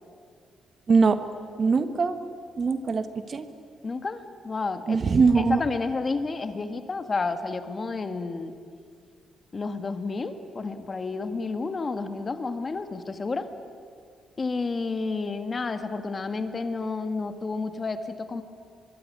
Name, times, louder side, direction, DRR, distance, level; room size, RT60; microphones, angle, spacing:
voice 1, 0.9-1.2 1.6-2.2 2.6-3.5 4.9-5.6, right 4 dB, 40° right, 9 dB, 1.6 m, -22 dB
voice 2, 3.8-5.0 5.4-8.5 9.5-13.5 14.4-18.4, left 3 dB, 30° left, 8 dB, 1.8 m, -30 dB
24.0 x 23.5 x 9.7 m, 2.1 s
cardioid pair, 125°, 0 cm